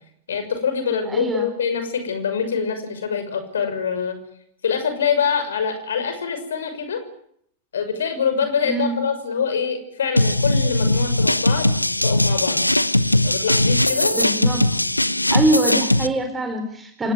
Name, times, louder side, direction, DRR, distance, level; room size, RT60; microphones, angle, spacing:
voice 1, 0.3-4.2 4.6-7.0 7.7-11.7 12.0-12.6 13.2-14.2, left 6 dB, 65° left, 9 dB, 6.1 m, -24 dB
voice 2, 1.1-1.5 8.6-8.9 14.1-14.7 15.3-17.1, right 2 dB, 15° right, 6 dB, 4.3 m, -23 dB
sound 1, 10.2-16.1, left 1 dB, 85° left, 1.0 m, -19 dB
27.5 x 18.0 x 9.6 m, 0.69 s
figure-of-eight pair, 90°, 0 cm